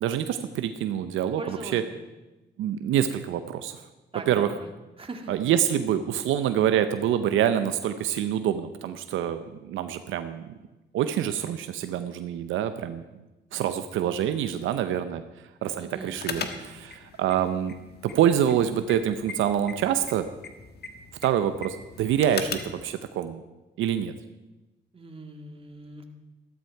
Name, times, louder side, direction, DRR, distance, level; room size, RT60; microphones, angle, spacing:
voice 1, 0.0-1.8 2.6-3.8 4.3-4.5 5.3-10.5 10.9-13.0 13.5-15.2 15.6-17.7 18.0-20.3 21.2-23.4 23.8-24.1, right 10 dB, 85° right, 9 dB, 0.7 m, -26 dB
voice 2, 1.4-2.0 4.1-4.7 5.0-5.3 15.8-16.7 24.9-26.1, right 2 dB, 30° right, 4 dB, 1.9 m, -40 dB
sound 1, 16.2-22.8, left 5 dB, 55° left, 1.4 m, -39 dB
13.5 x 12.5 x 4.6 m, 1.1 s
cardioid pair, 90°, 20 cm